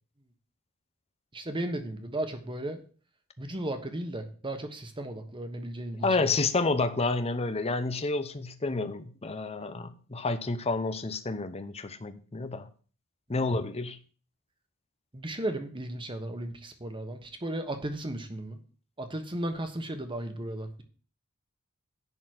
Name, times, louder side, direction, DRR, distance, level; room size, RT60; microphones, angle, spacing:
voice 1, 1.3-2.8 3.4-6.3 15.1-18.6 19.0-20.8, right 1 dB, 25° right, 1.3 m, -35 dB
voice 2, 6.0-12.7 13.3-14.0, left 3 dB, 30° left, 0.7 m, -29 dB
11.0 x 4.1 x 7.8 m
head